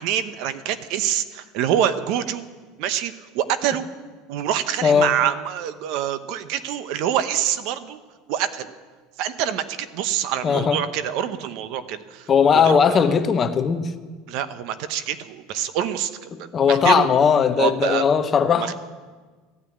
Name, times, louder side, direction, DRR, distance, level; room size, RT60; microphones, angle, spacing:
voice 1, 0.0-2.4 2.8-3.9 4.3-8.0 8.3-8.7 9.2-13.2 14.3-17.1 17.6-18.0 18.6-18.7, right 10 dB, 55° right, 12 dB, 0.9 m, -26 dB
voice 2, 4.8-5.1 10.4-10.8 12.3-13.9 16.3-18.7, left 6 dB, 25° left, 9 dB, 0.8 m, -18 dB
15.0 x 9.4 x 8.6 m, 1.4 s
supercardioid pair, 150°, 0 cm